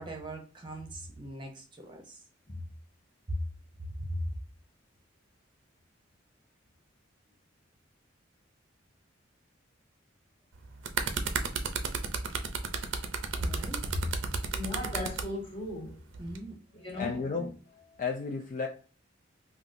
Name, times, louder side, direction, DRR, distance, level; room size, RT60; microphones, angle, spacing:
voice 1, 0.0-2.2 3.3-3.4 3.8-4.3 13.4-14.1 16.2-16.5, equal, 25° right, 0.8 m, -37 dB
sound 1, 10.5-15.3 16.1-16.4, right 5 dB, 70° right, 0.5 m, -33 dB
voice 2, 14.5-16.0 16.7-17.2, left 2 dB, 30° left, 1.3 m, -37 dB
voice 3, 17.0-18.7, left 4 dB, 45° left, 0.4 m, -34 dB
3.6 x 2.4 x 2.5 m
head